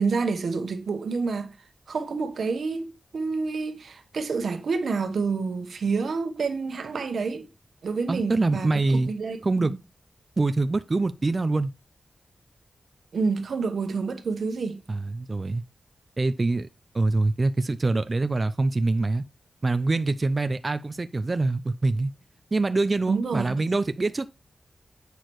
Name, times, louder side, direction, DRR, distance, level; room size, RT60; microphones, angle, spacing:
voice 1, 0.0-1.5 1.9-7.5 7.8-9.7 13.1-14.8 23.1-23.5, right 4 dB, 85° right, 1.1 m, -28 dB
voice 2, 8.1-9.1 9.4-9.7 10.4-11.7 14.9-15.6 16.2-16.7 16.9-19.2 19.6-22.1 22.5-24.3, right 3 dB, 40° right, 0.4 m, -24 dB
8.2 x 6.2 x 3.0 m
wide cardioid pair, 95°, 0 cm